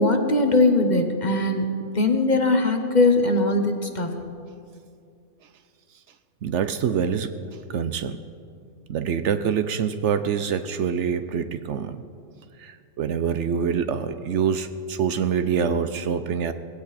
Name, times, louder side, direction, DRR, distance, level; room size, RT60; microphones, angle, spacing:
voice 1, 0.0-1.7 1.9-4.1, left 2 dB, 35° left, 5 dB, 1.2 m, -20 dB
voice 2, 6.4-7.4 7.7-8.2 8.9-12.0 12.6-16.5, right 7 dB, 65° right, 10 dB, 0.9 m, -25 dB
18.5 x 16.5 x 4.3 m, 2.4 s
omnidirectional pair, 1.3 m